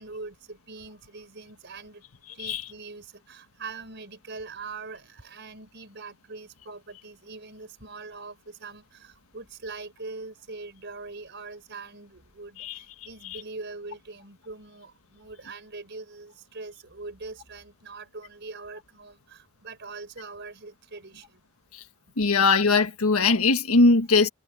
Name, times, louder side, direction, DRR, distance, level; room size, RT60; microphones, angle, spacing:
voice 1, 0.0-2.0 2.3-21.4, right 3 dB, 55° right, 5.3 m, -42 dB
voice 2, 22.2-24.3, left 3 dB, 90° left, 1.7 m, -20 dB
head